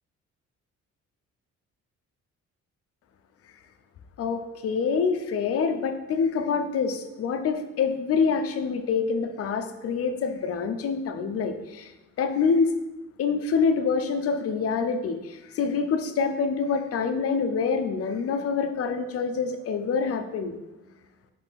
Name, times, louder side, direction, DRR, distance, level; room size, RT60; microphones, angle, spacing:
voice 1, 4.2-11.9 12.2-12.7 13.2-20.6, left 5 dB, 50° left, 8 dB, 0.5 m, -26 dB
4.3 x 3.3 x 3.5 m, 1.0 s
cardioid pair, 90°, 30 cm